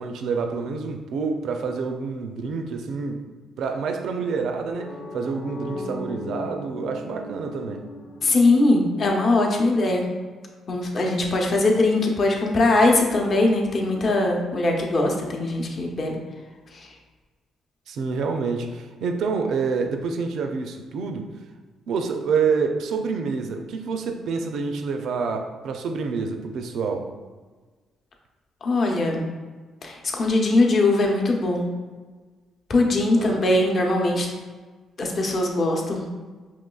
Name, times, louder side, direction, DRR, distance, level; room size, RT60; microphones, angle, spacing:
voice 1, 0.0-3.3 3.6-7.9 17.9-21.3 21.9-27.1 33.1-33.4, right 5 dB, 75° right, 5 dB, 0.4 m, -27 dB
sound 1, 4.7-9.5, left 1 dB, 75° left, 1.0 m, -37 dB
voice 2, 8.2-10.1 10.7-16.2 16.7-16.9 28.6-29.3 29.8-31.7 32.7-34.3 35.0-36.0, left 2 dB, 50° left, 0 dB, 0.7 m, -21 dB
5.2 x 3.0 x 2.3 m, 1.4 s
cardioid pair, 90°, 0 cm